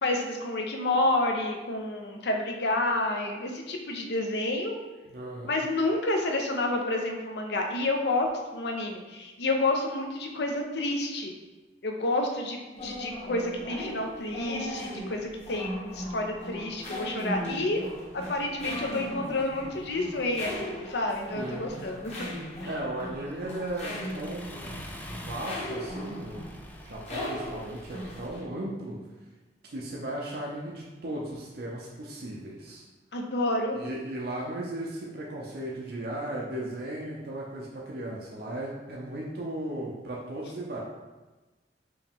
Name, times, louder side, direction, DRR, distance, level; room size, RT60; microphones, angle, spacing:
voice 1, 0.0-4.8 5.5-11.3 11.8-17.8 18.1-22.3 33.1-33.8, left 2 dB, 65° left, 2 dB, 0.6 m, -29 dB
voice 2, 5.1-5.5 21.4-21.7 22.6-24.8 25.1-26.6 26.8-29.0 29.6-32.8 33.7-40.8, right 1 dB, 60° right, -3 dB, 0.6 m, -36 dB
sound 1, 12.7-28.4, equal, 40° left, 1.2 m, -38 dB
Accelerating revving vroom, 23.0-28.3, left 1 dB, 10° left, 0.4 m, -46 dB
4.6 x 3.0 x 3.5 m, 1.2 s
head